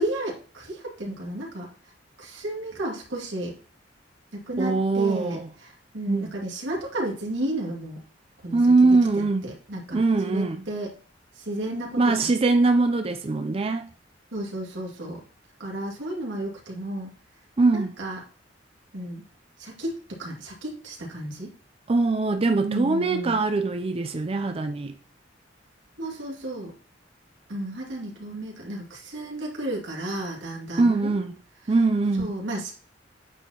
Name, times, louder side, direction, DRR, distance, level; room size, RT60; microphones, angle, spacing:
voice 1, 0.0-1.7 2.2-3.5 4.3-8.0 8.4-8.6 9.2-10.9 11.4-12.3 14.3-15.2 15.6-17.1 17.7-18.2 18.9-19.2 19.6-21.5 22.6-23.4 26.0-26.7 27.5-31.1 32.2-32.7, right 1 dB, 90° right, 2.3 m, -33 dB
voice 2, 4.6-5.5 6.1-6.3 8.5-9.5 9.9-10.6 12.0-13.9 17.6-18.0 21.9-24.9 30.8-31.3 31.7-32.3, right 3 dB, 30° right, 0.5 m, -22 dB
8.7 x 4.7 x 2.9 m
head